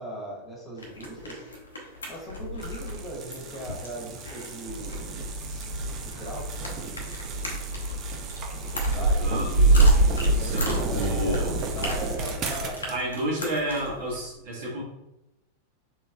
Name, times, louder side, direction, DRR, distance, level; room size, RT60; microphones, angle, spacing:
voice 1, 0.0-1.4 2.1-5.1 5.5-6.9 8.7-9.3 10.4-13.1, right 1 dB, 15° left, -4 dB, 1.4 m, -39 dB
sound 1, 0.8-14.3, left 2 dB, 75° left, 0.8 m, -38 dB
sound 2, 2.6-13.0, right 5 dB, 35° right, 0.5 m, -37 dB
sound 3, 4.7-12.7, right 2 dB, 85° right, 1.2 m, -25 dB
voice 2, 9.2-9.9 10.3-11.5 12.9-14.8, right 1 dB, 50° right, -4 dB, 1.2 m, -31 dB
3.7 x 3.2 x 2.2 m, 0.89 s
figure-of-eight pair, 90°, 0 cm